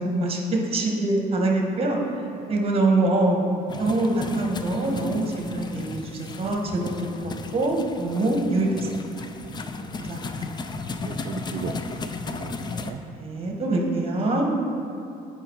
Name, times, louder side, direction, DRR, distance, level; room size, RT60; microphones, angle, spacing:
voice 1, 0.0-2.0 2.5-3.4 3.8-6.9 7.2-8.9 9.2-9.3 9.5-9.6 9.9-10.5 13.1-14.5, right 2 dB, 35° right, 1 dB, 1.4 m, -24 dB
sound 1, 3.7-12.9, left 3 dB, 25° left, 0.4 m, -35 dB
voice 2, 11.0-12.0 12.3-13.0, right 9 dB, 55° right, 5 dB, 0.4 m, -37 dB
8.9 x 4.9 x 4.6 m, 2.9 s
cardioid pair, 115°, 17 cm